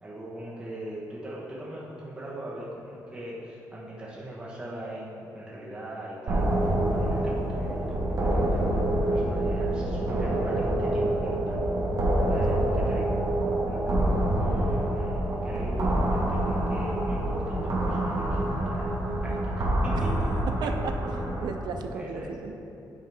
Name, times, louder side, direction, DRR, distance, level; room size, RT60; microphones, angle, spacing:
voice 1, 0.0-11.7 12.2-13.2 13.6-20.1 21.9-22.3, right 1 dB, 15° right, -7 dB, 1.0 m, -40 dB
sound 1, 6.3-21.5, right 1 dB, 55° right, 1.3 m, -26 dB
voice 2, 12.2-12.8 20.6-20.9 21.4-22.5, right 5 dB, 85° right, 6 dB, 0.5 m, -36 dB
9.1 x 4.7 x 3.4 m, 2.9 s
wide cardioid pair, 145°, 7 cm